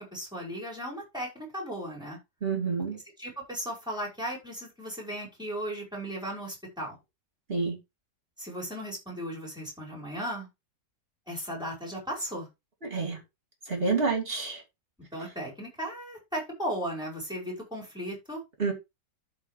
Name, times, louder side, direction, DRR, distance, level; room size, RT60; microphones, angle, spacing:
voice 1, 0.0-2.2 2.9-7.0 8.4-10.5 11.3-12.5 15.1-18.4, equal, ahead, -3 dB, 5.3 m, -36 dB
voice 2, 2.4-3.0 7.5-7.8 12.8-13.2 13.7-14.6 18.6-18.7, right 4 dB, 35° right, 2 dB, 3.1 m, -28 dB
14.0 x 4.9 x 3.3 m, 0.23 s
omnidirectional pair, 1.8 m